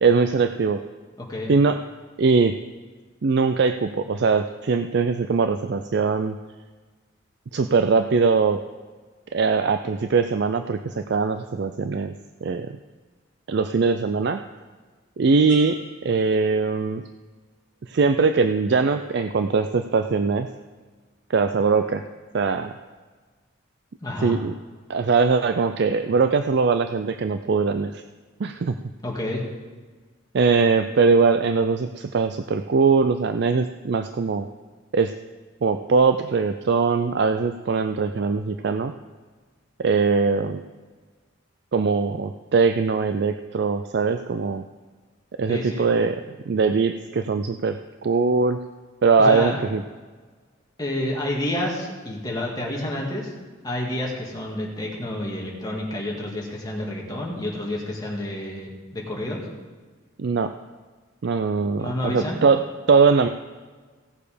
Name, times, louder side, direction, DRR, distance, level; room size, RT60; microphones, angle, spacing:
voice 1, 0.0-0.8 1.5-1.8 2.2-2.5 3.2-6.4 7.5-8.6 9.3-12.1 12.4-12.8 13.5-14.4 15.2-17.0 17.9-20.5 21.3-22.0 22.3-22.7 24.2-24.5 24.9-28.0 28.4-28.8 30.3-34.5 34.9-35.1 35.6-38.9 39.8-40.6 41.7-44.6 45.4-46.2 46.5-48.6 49.0-49.8 60.2-60.5 61.2-62.6 62.9-63.3, right 4 dB, 55° right, 8 dB, 0.4 m, -21 dB
sound 1, 15.5-17.3 17.8-18.2, right 2 dB, 5° right, 3.6 m, -45 dB
voice 2, 24.0-24.4 29.0-29.4 45.5-45.9 49.2-49.6 50.8-53.3 53.6-59.4 61.8-62.4, left 1 dB, 20° left, -2 dB, 2.0 m, -29 dB
17.0 x 6.8 x 5.0 m, 1.4 s
head